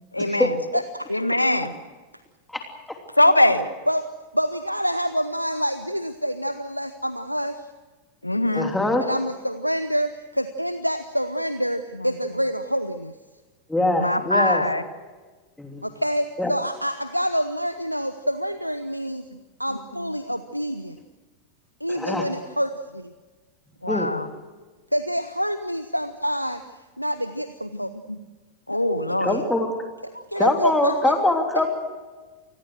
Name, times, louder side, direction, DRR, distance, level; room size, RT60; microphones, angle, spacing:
voice 1, 0.0-0.6 1.1-1.7 3.2-3.8 8.2-8.7 12.0-12.1 13.9-14.8 19.7-20.1 23.8-24.3 27.7-27.8 28.1-28.2 28.7-29.4, left 1 dB, 85° left, 12 dB, 1.3 m, -22 dB
voice 2, 0.7-1.1 3.9-4.0 4.3-7.6 9.0-13.1 15.8-19.3 19.6-21.0 21.8-23.1 24.9-26.6 27.0-27.9 28.7-28.8 29.3-29.4 30.0-31.1 31.6-31.7, equal, 90° right, 11 dB, 0.9 m, -27 dB
voice 3, 8.5-9.0 13.7-14.6 15.6-15.8 16.4-16.5 21.9-22.3 23.9-24.1 29.2-29.7 30.4-31.7, left 2 dB, 5° left, 3 dB, 3.1 m, -23 dB
29.0 x 20.5 x 6.4 m, 1.3 s
figure-of-eight pair, 90°, 0 cm